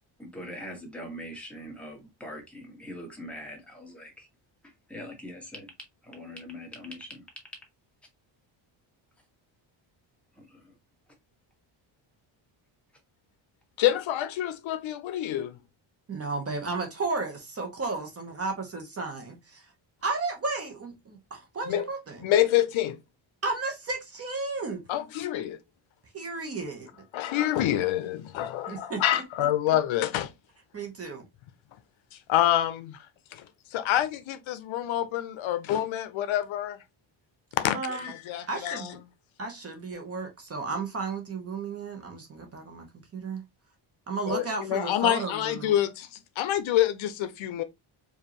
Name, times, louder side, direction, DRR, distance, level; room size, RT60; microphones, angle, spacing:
voice 1, 0.2-4.3 4.6-5.7 6.0-7.2 10.4-10.6, equal, 5° left, 1.5 m, -42 dB
voice 2, 13.8-15.6 21.7-21.9 22.2-23.0 24.9-25.6 27.1-30.3 32.3-33.0 33.3-33.4 33.7-36.8 37.6-38.9 44.3-46.1 46.4-47.6, left 12 dB, 70° left, 0.7 m, -27 dB
voice 3, 16.1-19.7 20.0-22.2 23.4-24.8 26.1-26.9 28.7-29.5 30.7-31.2 37.7-38.1 38.5-39.0 39.4-42.9 43.1-43.4 44.1-45.8, right 3 dB, 30° right, 1.0 m, -33 dB
4.9 x 2.6 x 2.9 m
cardioid pair, 155°, 48 cm